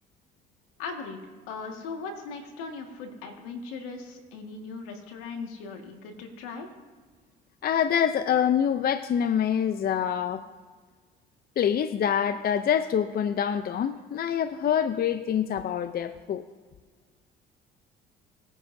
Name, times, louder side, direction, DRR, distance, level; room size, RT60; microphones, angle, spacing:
voice 1, 0.8-1.2 1.5-6.7, left 4 dB, 80° left, 3 dB, 1.8 m, -38 dB
voice 2, 7.6-10.4 11.6-16.5, left 8 dB, 45° left, 12 dB, 0.6 m, -25 dB
20.5 x 9.7 x 2.7 m, 1.5 s
supercardioid pair, 65°, 21 cm